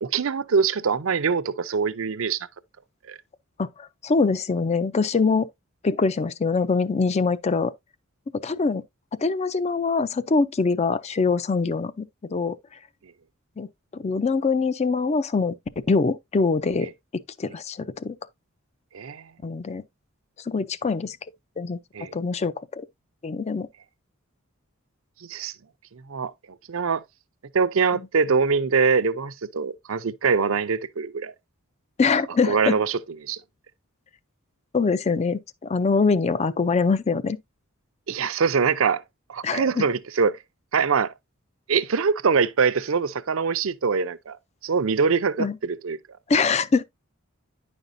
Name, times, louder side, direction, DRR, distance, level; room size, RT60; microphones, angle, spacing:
voice 1, 0.0-2.5 3.1-3.2 16.8-16.9 18.9-19.2 21.9-22.1 25.3-25.5 26.1-26.3 26.7-27.0 27.5-31.3 32.4-33.4 38.1-39.0 39.3-40.4 40.7-41.1 41.7-44.4 44.6-46.0, right 5 dB, 70° right, 0.6 m, -23 dB
voice 2, 3.6-5.5 5.8-7.7 8.4-8.8 9.2-12.6 13.6-13.7 13.9-15.5 15.9-16.9 17.4-18.1 19.4-19.8 20.5-21.2 21.6-21.8 22.1-22.9 23.2-23.7 32.0-32.8 34.7-37.4 39.4-39.9 45.4-45.6 46.3-46.8, left 4 dB, 30° left, 0.4 m, -23 dB
9.8 x 5.2 x 2.6 m
head